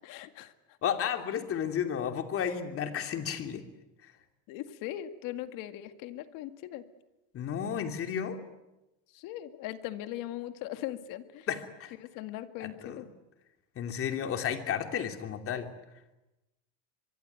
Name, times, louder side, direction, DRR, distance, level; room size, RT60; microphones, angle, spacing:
voice 1, 0.0-0.5 4.5-6.9 9.1-11.5 12.0-13.1, left 13 dB, 55° left, 9 dB, 2.1 m, -39 dB
voice 2, 0.8-3.6 7.3-8.4 11.5-11.9 12.6-13.0 13.8-15.7, left 8 dB, 35° left, 6 dB, 2.9 m, -32 dB
24.0 x 23.5 x 9.4 m, 1.0 s
supercardioid pair, 135°, 38 cm